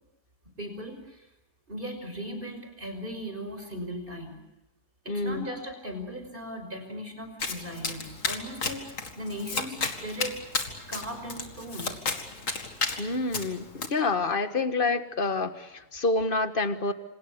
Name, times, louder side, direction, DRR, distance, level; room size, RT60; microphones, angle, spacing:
voice 1, 0.6-1.3 1.7-4.4 5.0-8.8 9.2-10.4 10.9-12.0, equal, 35° right, 6 dB, 5.7 m, -38 dB
voice 2, 5.1-5.5 13.0-16.9, left 3 dB, 35° left, 9 dB, 1.6 m, -28 dB
Domestic sounds home sounds, 7.4-13.9, left 4 dB, 55° left, 2.5 m, -33 dB
27.5 x 27.0 x 6.7 m, 0.93 s
omnidirectional pair, 1.7 m